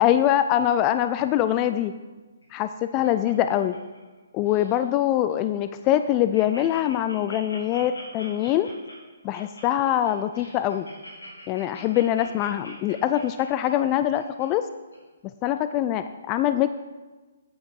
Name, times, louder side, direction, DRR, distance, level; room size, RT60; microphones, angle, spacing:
voice 1, 0.0-1.9 2.5-3.8 4.3-8.7 9.2-10.9 11.5-14.6 15.4-16.7, left 12 dB, 25° left, 10 dB, 0.3 m, -23 dB
Laughter, 2.4-4.2 4.4-4.8 5.3-5.4 5.7-5.8 6.0-14.4 14.9-15.0, left 1 dB, 90° left, 3.7 m, -44 dB
8.8 x 8.7 x 4.7 m, 1.3 s
hypercardioid pair, 140°, 0 cm